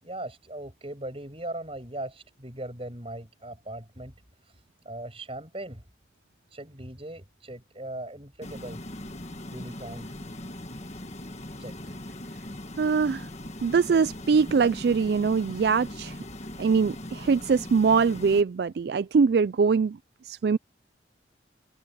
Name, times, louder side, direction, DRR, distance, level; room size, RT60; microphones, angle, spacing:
voice 1, 0.0-4.1 4.8-5.8 6.5-8.8 9.5-10.1 11.6-12.0, right 1 dB, 30° right, 6.8 m, -39 dB
sound 1, 8.4-18.4, left 1 dB, 35° left, 1.6 m, -40 dB
voice 2, 12.8-13.3 13.6-16.2 16.6-20.0 20.2-20.6, right 5 dB, 55° right, 0.3 m, -23 dB
head